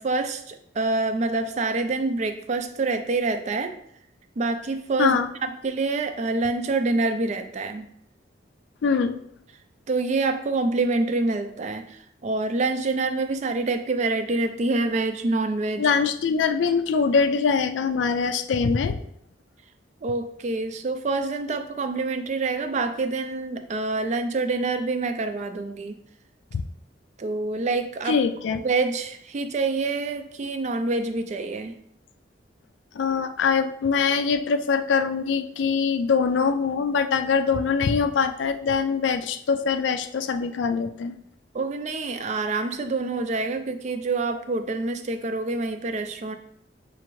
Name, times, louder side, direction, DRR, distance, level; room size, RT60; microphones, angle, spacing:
voice 1, 0.0-3.7 4.4-7.9 9.9-15.9 20.0-26.0 27.2-28.2 28.6-31.7 41.5-46.4, right 3 dB, 40° right, 8 dB, 0.4 m, -26 dB
voice 2, 5.0-5.3 8.8-9.2 15.8-19.0 26.5-26.6 28.1-28.7 32.9-41.2, left 5 dB, 85° left, 8 dB, 0.4 m, -23 dB
5.6 x 2.5 x 3.1 m, 0.71 s
head